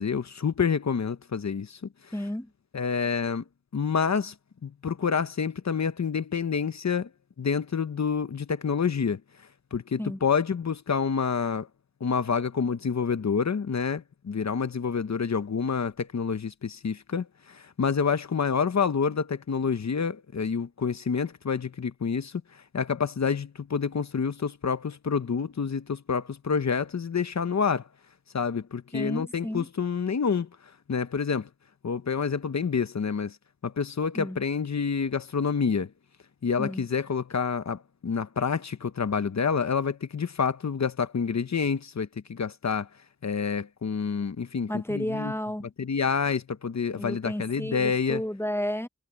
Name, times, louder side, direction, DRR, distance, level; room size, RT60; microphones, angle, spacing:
voice 1, 0.0-1.8 2.7-3.4 3.7-4.3 4.6-7.1 7.4-9.2 9.7-11.7 12.0-22.3 22.7-27.9 28.3-30.5 30.9-31.5 31.8-33.4 33.6-35.9 36.4-42.9 43.2-45.3 45.8-48.2, left 6 dB, 70° left, 0.9 m, -28 dB
voice 2, 2.1-2.5 10.0-10.2 28.9-29.7 34.1-34.4 36.6-36.8 44.7-45.7 46.9-48.9, equal, 10° left, 0.8 m, -32 dB
wide cardioid pair, 80°, 29 cm